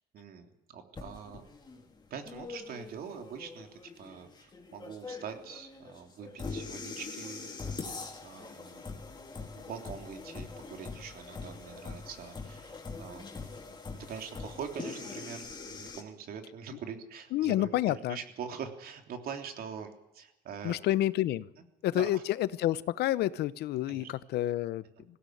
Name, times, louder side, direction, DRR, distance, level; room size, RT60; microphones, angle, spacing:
voice 1, 0.1-1.4 2.1-7.5 8.2-8.8 9.5-13.2 13.9-20.8 21.9-22.2 23.9-24.1 25.0-25.1, right 7 dB, 60° right, 5 dB, 3.4 m, -43 dB
sound 1, 1.0-16.0, left 4 dB, 25° left, 3.6 m, -43 dB
voice 2, 17.3-18.2 20.6-21.5 21.8-24.8, left 14 dB, 75° left, 17 dB, 0.8 m, -29 dB
20.0 x 17.0 x 9.3 m, 0.93 s
cardioid pair, 110°, 17 cm